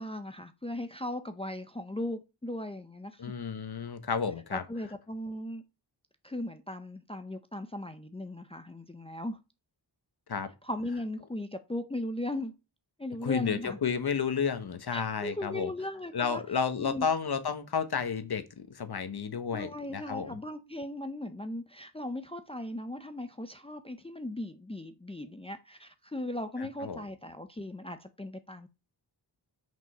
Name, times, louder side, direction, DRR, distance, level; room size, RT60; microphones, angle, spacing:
voice 1, 0.0-3.3 4.5-5.6 6.2-9.4 10.6-12.5 13.0-13.8 14.9-16.4 16.8-17.1 19.5-28.7, left 1 dB, 15° left, 0.6 m, -38 dB
voice 2, 3.2-4.6 10.3-10.5 13.2-15.7 16.1-20.4 26.6-27.1, left 6 dB, 60° left, 1.1 m, -32 dB
6.4 x 5.3 x 5.4 m
wide cardioid pair, 90°, 44 cm